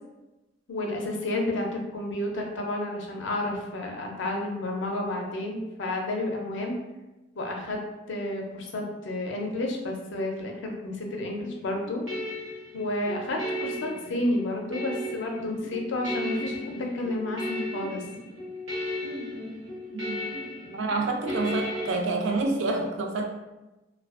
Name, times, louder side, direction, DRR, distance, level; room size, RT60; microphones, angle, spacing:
voice 1, 0.7-6.8 7.4-7.8 8.1-12.0 12.7-18.0, left 1 dB, 70° left, 1 dB, 0.5 m, -31 dB
sound 1, 11.4-21.9, left 1 dB, 85° right, 0.8 m, -35 dB
voice 2, 20.7-23.2, right 3 dB, 70° right, 2 dB, 0.4 m, -27 dB
2.4 x 2.2 x 2.4 m, 1.0 s
head